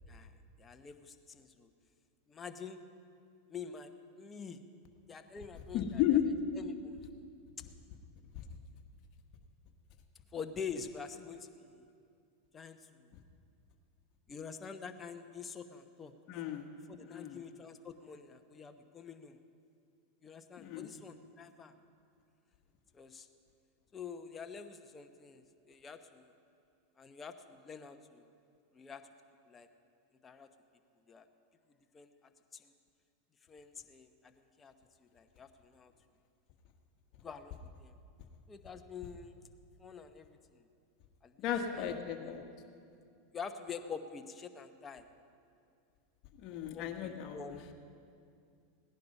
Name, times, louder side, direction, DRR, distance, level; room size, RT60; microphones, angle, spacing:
voice 1, 0.6-1.7 2.3-2.8 3.5-4.6 5.1-7.0 10.3-11.8 12.5-13.1 14.3-16.1 16.9-19.4 20.2-21.7 22.9-23.3 23.9-26.3 27.0-28.3 28.7-29.0 29.5-29.7 30.2-30.5 31.1-31.3 31.9-32.1 32.5-32.7 33.5-34.7 35.0-35.9 37.2-37.9 38.5-39.4 39.8-40.7 41.2-42.3 43.3-45.0 46.7-47.7, left 6 dB, 20° left, 6 dB, 1.0 m, -47 dB
voice 2, 5.7-6.3 16.3-16.7 17.1-17.4 20.6-20.9 41.4-42.4 46.4-47.7, left 10 dB, 50° left, 4 dB, 1.5 m, -34 dB
17.5 x 10.5 x 5.5 m, 2.5 s
hypercardioid pair, 110°, 0 cm